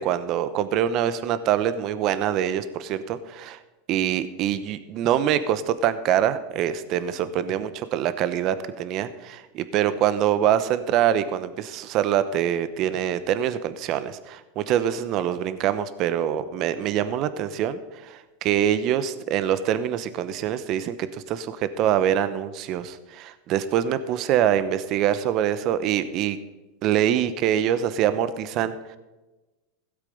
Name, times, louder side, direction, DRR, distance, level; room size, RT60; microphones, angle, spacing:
voice 1, 0.0-3.6 3.9-26.4 26.8-28.7, right 10 dB, 45° right, 13 dB, 0.9 m, -24 dB
16.0 x 8.2 x 5.3 m, 1.1 s
supercardioid pair, 130°, 0 cm